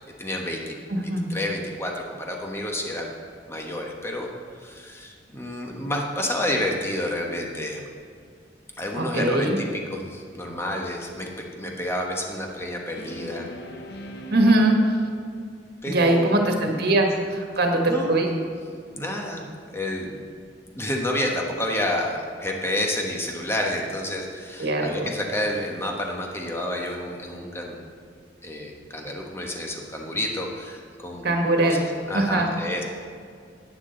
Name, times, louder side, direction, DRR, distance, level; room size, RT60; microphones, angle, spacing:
voice 1, 0.2-0.8 1.3-3.1 3.5-4.3 4.6-7.8 8.8-13.5 15.8-16.5 17.8-18.1 18.9-20.1 20.7-27.8 28.4-31.3 31.6-31.8 32.1-32.8, left 1 dB, 15° left, 0 dB, 1.3 m, -29 dB
voice 2, 0.9-1.3 9.0-9.6 14.3-14.7 15.9-18.3 24.6-24.9 31.2-31.8 32.1-32.5, right 2 dB, 60° right, 2 dB, 1.6 m, -21 dB
sound 1, 10.5-10.9 12.9-14.9, equal, 65° left, 0.9 m, -40 dB
11.0 x 9.7 x 3.9 m, 2.2 s
head